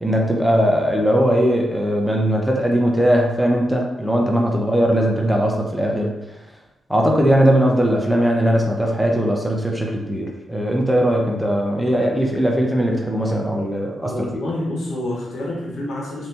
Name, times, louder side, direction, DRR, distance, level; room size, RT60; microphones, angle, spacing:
voice 1, 0.0-6.1 6.9-14.1, equal, 5° right, -1 dB, 0.6 m, -19 dB
voice 2, 14.0-16.3, left 1 dB, 85° left, -5 dB, 1.0 m, -28 dB
3.3 x 2.6 x 2.8 m, 0.99 s
cardioid pair, 80°, 0 cm